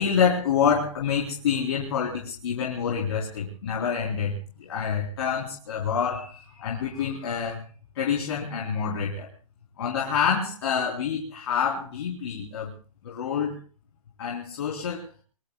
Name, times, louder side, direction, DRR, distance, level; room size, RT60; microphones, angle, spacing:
voice 1, 0.0-7.6 7.9-9.3 9.8-12.7 13.0-13.6 14.2-15.1, left 7 dB, 45° left, -3 dB, 4.1 m, -27 dB
25.5 x 23.0 x 2.4 m, 0.36 s
hypercardioid pair, 165°, 19 cm